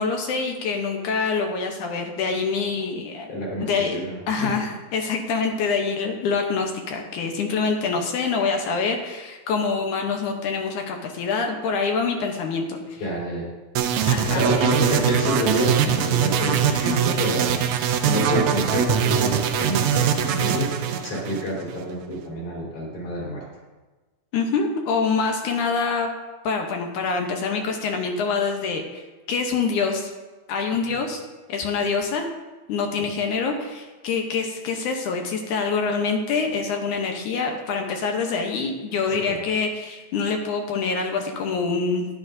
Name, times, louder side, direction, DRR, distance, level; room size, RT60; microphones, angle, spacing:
voice 1, 0.0-3.3 3.6-4.0 4.3-13.0 14.1-14.4 24.3-26.1 26.4-29.0 29.3-30.1 30.5-31.2 31.5-32.3 32.7-42.1, left 4 dB, 70° left, 3 dB, 2.1 m, -25 dB
voice 2, 3.3-4.5 13.0-13.5 14.3-23.4 39.3-39.4, equal, 55° left, -6 dB, 5.3 m, -28 dB
sound 1, 13.8-21.8, right 8 dB, 85° right, 1.6 m, -22 dB
14.0 x 11.0 x 2.6 m, 1.2 s
omnidirectional pair, 4.2 m